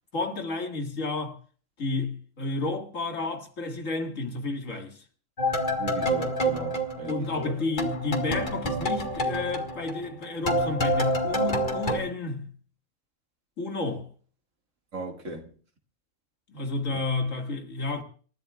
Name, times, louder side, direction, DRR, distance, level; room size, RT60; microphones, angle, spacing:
voice 1, 0.1-1.4 1.8-5.0 7.0-12.5 13.6-14.1 16.5-18.0, left 3 dB, 90° left, 2.3 m, -31 dB
sound 1, 5.4-7.5 7.8-12.0, equal, 40° left, 2.0 m, -28 dB
voice 2, 5.8-7.5 14.9-15.5 16.9-17.0, right 2 dB, 80° right, 2.4 m, -37 dB
28.0 x 14.0 x 2.4 m
omnidirectional pair, 1.3 m